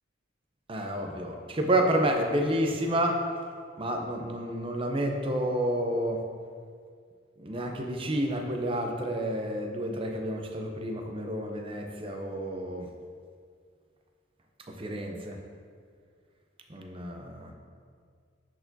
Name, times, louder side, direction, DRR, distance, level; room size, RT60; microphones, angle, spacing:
voice 1, 0.7-3.2 3.8-6.2 7.4-12.9 14.8-15.4 16.7-17.5, right 1 dB, 25° right, 3 dB, 0.5 m, -29 dB
10.0 x 4.4 x 2.7 m, 2.1 s
head